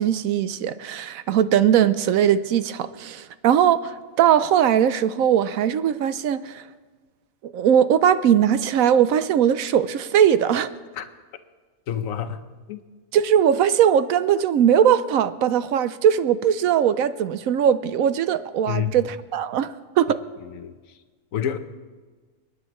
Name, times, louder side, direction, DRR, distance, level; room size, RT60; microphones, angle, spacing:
voice 1, 0.0-6.6 7.4-10.7 13.1-20.2, right 9 dB, 70° right, 0.9 m, -20 dB
voice 2, 11.9-12.4 12.7-12.8 18.7-19.0 20.4-20.7 21.3-21.6, left 9 dB, 65° left, 1.1 m, -28 dB
29.5 x 9.9 x 3.0 m
omnidirectional pair, 1.6 m